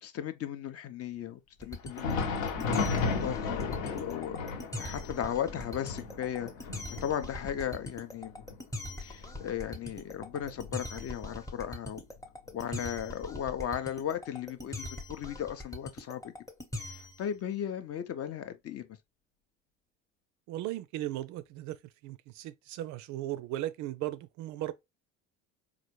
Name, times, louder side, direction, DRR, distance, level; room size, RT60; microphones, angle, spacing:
voice 1, 0.0-4.4 4.8-6.5 6.9-8.3 9.0-12.0 12.5-16.3 16.8-18.9, left 9 dB, 40° left, 0.6 m, -36 dB
sound 1, 1.6-17.2, left 1 dB, 10° left, 0.9 m, -41 dB
Thunder, 1.8-11.2 11.6-11.8 12.4-12.6 13.6-13.7, left 4 dB, 75° left, 1.1 m, -35 dB
voice 2, 20.5-21.8 22.0-24.7, right 14 dB, 50° right, 0.4 m, -37 dB
4.1 x 2.5 x 3.0 m
hypercardioid pair, 65°, 39 cm